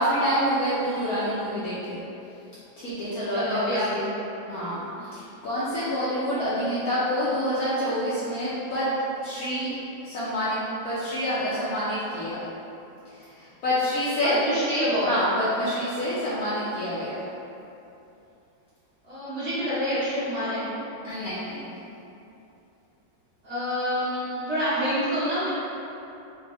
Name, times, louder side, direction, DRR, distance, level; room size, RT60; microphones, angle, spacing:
voice 1, 0.0-2.0 2.8-4.1 4.5-8.9 9.2-9.7 10.0-12.4 13.2-14.4 15.0-17.3 21.0-21.7, equal, 70° left, -10 dB, 0.9 m, -27 dB
voice 2, 3.3-4.3 5.0-5.2 14.2-15.1 19.0-20.6 23.4-25.5, equal, 50° right, -13 dB, 1.0 m, -27 dB
4.4 x 2.1 x 2.9 m, 2.8 s
omnidirectional pair, 2.1 m